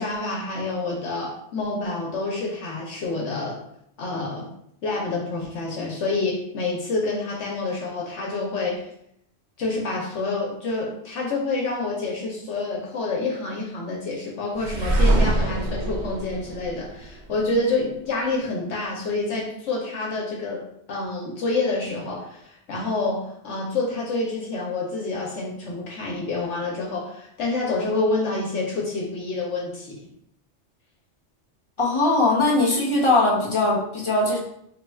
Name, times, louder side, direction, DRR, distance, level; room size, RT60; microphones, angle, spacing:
voice 1, 0.0-3.6 4.0-4.5 4.8-8.9 9.6-30.1, left 3 dB, 75° left, -2 dB, 1.0 m, -28 dB
sound 1, 14.6-17.5, right 1 dB, 55° right, 0.5 m, -23 dB
voice 2, 31.8-34.4, left 2 dB, 25° left, -4 dB, 0.9 m, -20 dB
3.4 x 2.3 x 4.2 m, 0.72 s
omnidirectional pair, 1.2 m